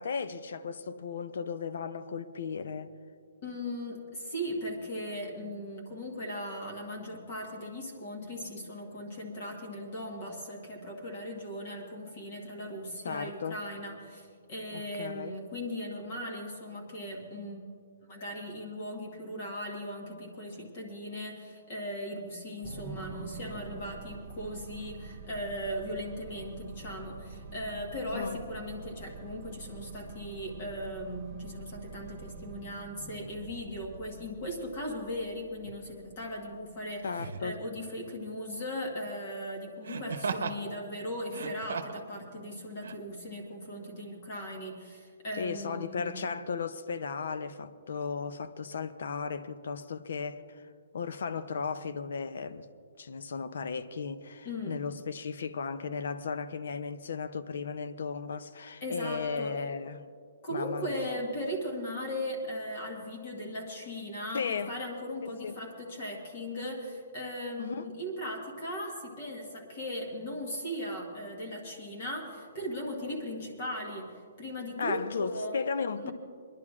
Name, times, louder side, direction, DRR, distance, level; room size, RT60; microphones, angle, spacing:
voice 1, 0.0-2.9 13.0-13.6 14.7-15.3 28.1-28.4 37.0-37.6 45.4-50.6 50.9-52.7 53.0-60.1 60.5-61.2 64.3-64.7 65.2-65.6 67.6-67.9 74.8-76.1, left 5 dB, 55° left, 0.5 m, -35 dB
voice 2, 3.4-17.6 18.1-46.2 54.4-54.8 58.8-59.6 60.4-75.6 76.0-76.1, equal, 30° left, 1.3 m, -38 dB
sound 1, 22.6-37.1, right 4 dB, 25° right, 0.7 m, -46 dB
Laughter, 35.6-35.8 37.1-37.5 39.8-40.6 41.2-42.1 42.8-43.0, right 5 dB, 80° right, 0.8 m, -36 dB
28.0 x 11.0 x 2.4 m
hypercardioid pair, 180°, 0 cm